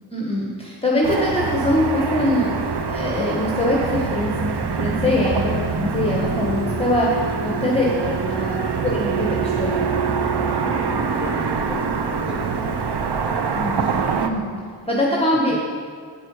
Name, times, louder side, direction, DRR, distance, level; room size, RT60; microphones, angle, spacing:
voice 1, 0.1-9.8 13.5-13.8 14.1-14.5 14.9-15.6, left 1 dB, 15° left, -4 dB, 1.3 m, -23 dB
Car passing by / Traffic noise roadway noise, 1.0-14.3, right 5 dB, 80° right, 0.7 m, -24 dB
voice 2, 10.7-14.0 15.5-15.6, left 1 dB, ahead, -3 dB, 1.5 m, -37 dB
8.6 x 7.3 x 4.9 m, 2.1 s
wide cardioid pair, 50°, 40 cm